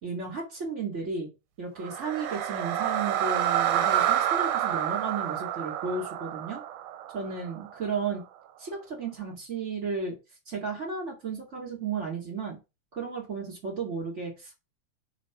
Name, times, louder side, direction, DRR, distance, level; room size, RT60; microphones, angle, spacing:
voice 1, 0.0-1.3 1.6-6.6 7.1-8.2 8.6-10.2 10.5-12.6 12.9-14.5, right 4 dB, 25° right, 1 dB, 1.9 m, -34 dB
sound 1, 1.8-7.9, right 11 dB, 85° right, 2.1 m, -28 dB
5.0 x 4.1 x 5.9 m, 0.26 s
omnidirectional pair, 3.6 m